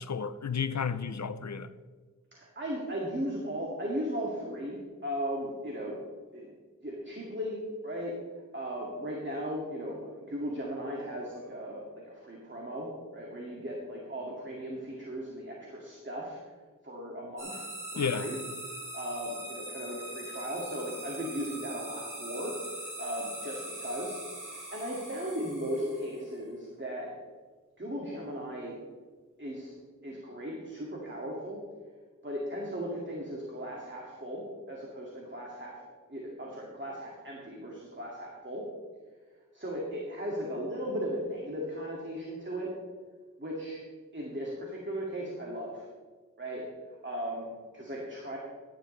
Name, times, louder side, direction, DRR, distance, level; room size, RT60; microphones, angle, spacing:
voice 1, 0.0-1.7 18.0-18.3, left 6 dB, 60° left, 0.6 m, -32 dB
voice 2, 2.3-6.0 6.3-6.5 6.8-7.6 7.8-8.1 8.5-16.5 16.8-18.4 18.9-22.5 22.8-24.2 24.4-27.1 27.8-28.7 29.4-29.7 30.0-31.6 32.2-35.8 36.1-38.6 39.5-42.7 43.4-43.8 44.1-45.9 46.4-48.4, equal, 35° right, 2.2 m, -37 dB
sound 1, 17.4-26.3, right 1 dB, 75° right, 4.1 m, -42 dB
15.0 x 10.5 x 3.3 m
wide cardioid pair, 60°, 32 cm